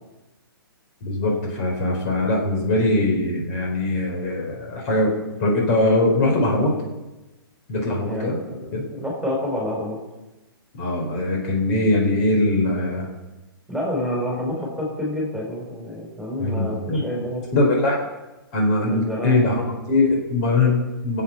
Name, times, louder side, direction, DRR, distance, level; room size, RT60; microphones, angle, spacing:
voice 1, 1.0-5.1 5.4-6.7 7.7-8.4 8.7-8.9 10.8-13.1 16.4-17.0 17.5-18.0 18.5-21.2, left 2 dB, 40° left, 1 dB, 3.6 m, -21 dB
voice 2, 8.1-10.0 13.7-17.4 18.9-19.3, left 1 dB, ahead, -3 dB, 4.5 m, -28 dB
19.5 x 8.3 x 5.8 m, 1.1 s
hypercardioid pair, 140°, 13 cm